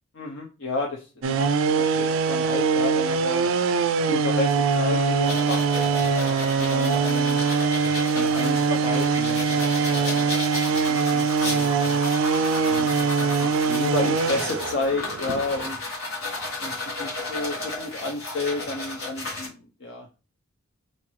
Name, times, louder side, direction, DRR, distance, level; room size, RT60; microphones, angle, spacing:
voice 1, 0.1-3.5 4.1-7.4 8.1-10.4 10.7-12.0 12.7-15.8 16.6-20.1, left 2 dB, 55° left, 0 dB, 0.6 m, -32 dB
sound 1, 1.2-15.7, right 5 dB, 65° right, 0.3 m, -23 dB
sound 2, 5.2-19.5, left 2 dB, 70° left, 1.6 m, -34 dB
4.0 x 2.5 x 3.0 m, 0.32 s
head